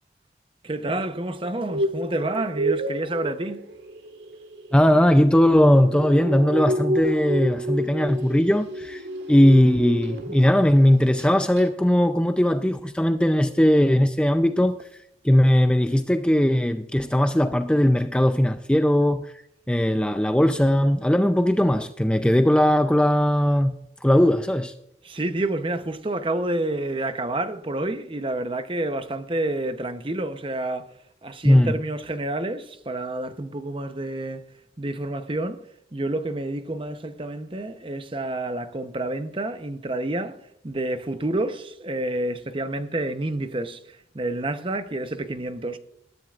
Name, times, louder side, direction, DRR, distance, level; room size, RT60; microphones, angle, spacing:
voice 1, 0.6-3.7 25.0-30.9 31.2-34.4 34.8-35.6 35.9-40.4 40.6-45.8, right 2 dB, 30° right, 0.8 m, -29 dB
sound 1, 1.4-10.7 11.0-11.3 11.6-11.7, equal, 70° right, 1.7 m, -30 dB
voice 2, 4.7-9.0 9.3-14.8 15.2-19.3 19.7-23.7 24.0-24.7 31.4-31.7, left 1 dB, 5° left, 0.4 m, -19 dB
20.5 x 10.5 x 2.5 m
head